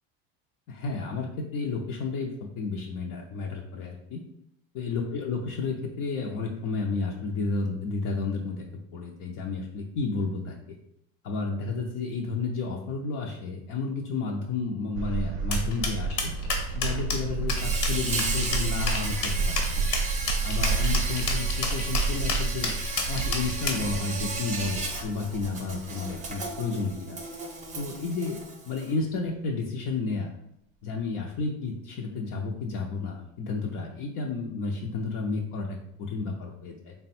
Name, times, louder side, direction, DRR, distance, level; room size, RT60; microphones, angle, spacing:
voice 1, 0.7-4.2 4.7-8.7 8.9-10.8 11.2-16.3 16.7-19.9 20.4-22.7 23.1-27.2 27.8-30.3 30.8-36.9, left 4 dB, 55° left, 0 dB, 0.6 m, -32 dB
sound 1, 14.9-26.9 27.3-27.4 27.7-27.8, right 4 dB, 90° right, 0.5 m, -30 dB
sound 2, 15.5-23.9, left 4 dB, 80° left, 1.2 m, -30 dB
Insect, 17.5-28.9, right 3 dB, 20° right, 0.6 m, -35 dB
3.4 x 2.2 x 4.2 m, 0.76 s
cardioid pair, 125°, 38 cm